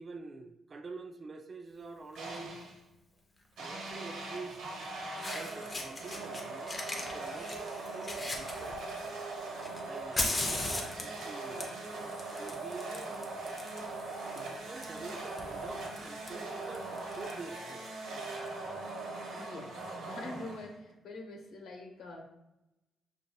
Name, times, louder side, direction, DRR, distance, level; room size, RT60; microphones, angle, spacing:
voice 1, 0.0-2.6 3.6-4.6 5.3-6.8 7.1-8.8 9.8-11.7 12.4-13.1 14.3-17.9, right 3 dB, 35° right, 6 dB, 0.3 m, -47 dB
Fire, 2.1-2.4 3.8-3.9 4.8-4.9 5.2-6.4 6.7-9.1 9.6-17.3, left 2 dB, 25° left, 0.6 m, -39 dB
sound 1, 2.2-2.8 3.6-20.9, right 2 dB, 85° right, 0.9 m, -41 dB
voice 2, 19.3-19.8 20.1-22.2, left 2 dB, 70° left, 1 dB, 0.8 m, -44 dB
5.9 x 2.6 x 2.3 m, 0.94 s
cardioid pair, 135°, 0 cm